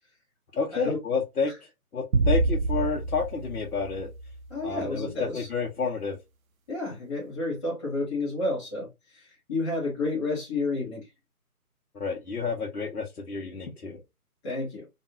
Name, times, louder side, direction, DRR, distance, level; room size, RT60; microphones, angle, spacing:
voice 1, 0.5-1.5 1.9-4.1 4.6-6.2 11.9-14.0, left 5 dB, 80° left, 0.9 m, -30 dB
sound 1, 2.1-4.6, right 3 dB, 65° right, 0.6 m, -27 dB
voice 2, 4.5-5.5 6.7-8.9 9.1-11.0 14.4-14.9, left 2 dB, 20° left, 0.9 m, -30 dB
2.5 x 2.4 x 2.8 m
figure-of-eight pair, 145°, 45 cm